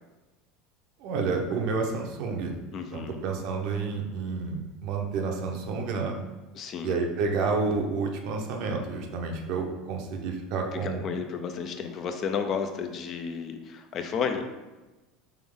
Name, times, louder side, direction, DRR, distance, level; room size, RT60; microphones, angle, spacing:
voice 1, 1.0-2.6 2.9-6.2 6.8-11.0, right 4 dB, 65° right, 2 dB, 0.7 m, -30 dB
voice 2, 2.7-3.2 6.5-7.0 10.7-14.5, left 6 dB, 45° left, 6 dB, 0.4 m, -32 dB
3.4 x 3.0 x 3.6 m, 1.1 s
supercardioid pair, 115°, 0 cm